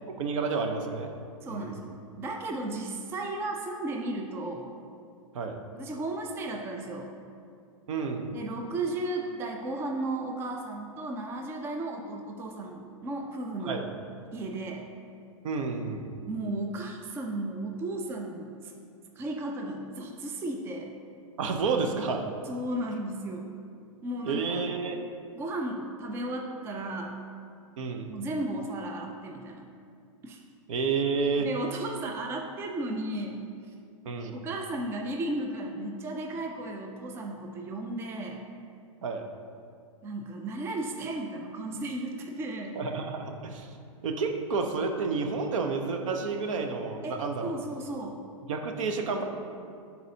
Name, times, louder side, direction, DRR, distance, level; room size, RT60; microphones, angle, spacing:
voice 1, 0.2-1.1 1.5-1.7 5.3-5.6 7.9-8.3 13.6-13.9 15.4-16.1 21.4-22.3 24.2-25.0 27.8-28.1 30.7-31.5 34.0-34.4 39.0-39.2 42.8-43.7 44.0-47.5 48.5-49.2, right 4 dB, 65° right, 4 dB, 0.8 m, -30 dB
voice 2, 1.4-4.7 5.8-7.1 8.3-13.8 14.3-14.9 16.3-18.7 19.2-20.9 22.5-23.5 24.0-24.6 25.4-27.2 28.1-29.6 30.2-30.4 31.4-33.5 34.3-38.4 40.0-42.8 47.0-48.2, right 2 dB, 15° right, 2 dB, 0.4 m, -34 dB
11.0 x 4.2 x 2.8 m, 2.4 s
hypercardioid pair, 135°, 18 cm